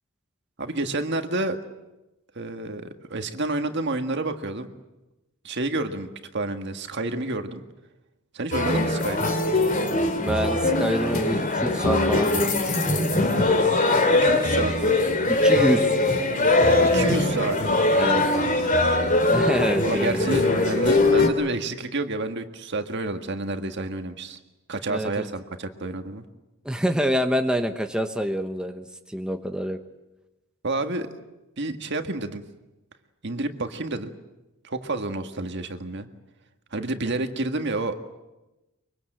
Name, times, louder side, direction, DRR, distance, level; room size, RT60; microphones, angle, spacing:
voice 1, 0.6-1.6 2.4-4.7 5.4-6.1 6.3-7.6 8.3-9.3 14.2-15.0 16.8-17.6 17.9-19.2 19.8-24.4 24.7-26.2 30.6-31.1 31.6-32.4 33.2-34.1 34.6-36.1 36.7-38.0, right 2 dB, 55° right, 7 dB, 1.7 m, -29 dB
sound 1, 8.5-21.3, left 2 dB, 40° left, 2.8 m, -21 dB
voice 2, 10.2-13.2 15.3-15.9 17.9-18.2 19.3-21.2 24.9-25.3 26.6-29.8, equal, 5° right, 5 dB, 1.1 m, -27 dB
24.5 x 24.0 x 7.8 m, 1.0 s
head